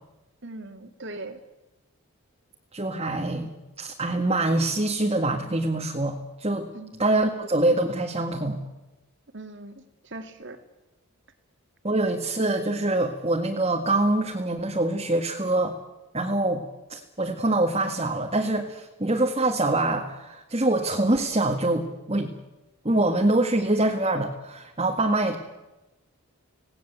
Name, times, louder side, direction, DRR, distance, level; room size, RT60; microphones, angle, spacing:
voice 1, 0.4-1.4 6.7-6.9 9.3-10.6, right 2 dB, 55° right, 7 dB, 2.3 m, -40 dB
voice 2, 2.7-6.7 7.0-8.6 11.8-15.7 16.1-16.6 16.9-22.3 22.8-25.4, right 2 dB, 25° right, 1 dB, 1.8 m, -25 dB
26.5 x 18.5 x 8.2 m, 1.0 s
head